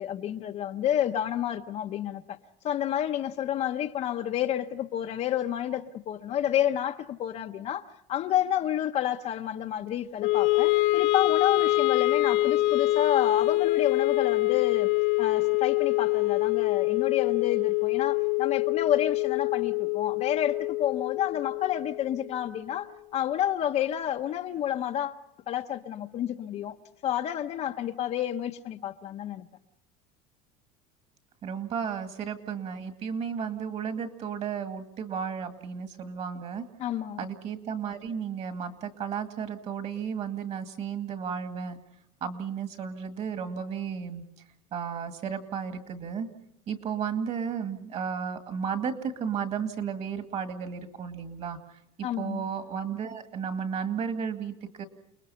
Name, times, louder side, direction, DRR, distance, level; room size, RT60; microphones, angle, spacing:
voice 1, 0.0-2.4 2.6-14.9 15.2-25.2 25.5-26.8 27.0-29.5 36.8-37.3 52.0-52.5, left 11 dB, 40° left, 0.9 m, -30 dB
Wind instrument woodwind instrument, 10.2-22.4, left 19 dB, 75° left, 1.3 m, -25 dB
voice 2, 31.4-36.6 37.2-41.8 42.2-44.2 44.7-46.3 46.7-51.6 52.0-54.8, right 7 dB, 35° right, 2.1 m, -33 dB
29.5 x 20.5 x 5.7 m
cardioid pair, 155°, 18 cm